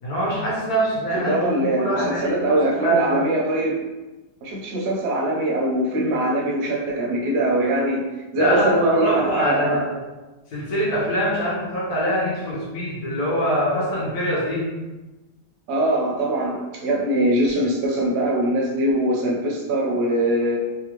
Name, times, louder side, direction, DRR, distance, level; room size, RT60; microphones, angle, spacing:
voice 1, 0.0-3.1 8.4-10.0 10.5-14.7, equal, 65° left, -7 dB, 1.6 m, -24 dB
voice 2, 1.1-3.7 4.4-8.0 8.3-9.9 15.7-20.6, right 1 dB, 55° right, -2 dB, 0.8 m, -22 dB
3.5 x 2.5 x 2.9 m, 1.1 s
omnidirectional pair, 1.8 m